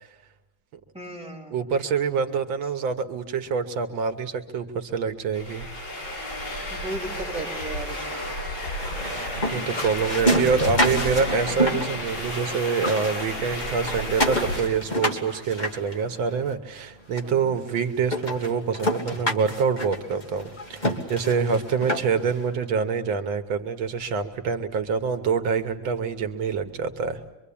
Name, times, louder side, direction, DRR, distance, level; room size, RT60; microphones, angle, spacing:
voice 1, 0.9-1.6 6.7-8.2 17.2-17.5, right 2 dB, 5° right, -3 dB, 4.0 m, -36 dB
voice 2, 1.5-5.7 6.5-6.6 9.0-27.2, right 5 dB, 80° right, 7 dB, 1.9 m, -26 dB
sound 1, 5.3-14.6, left 1 dB, 60° left, 8.8 m, -32 dB
sound 2, 8.8-12.5 12.7-16.5 17.2-17.3 17.7-17.8 18.1-22.3, equal, 20° left, 2.2 m, -28 dB
25.0 x 24.5 x 8.5 m, 1.0 s
omnidirectional pair, 2.1 m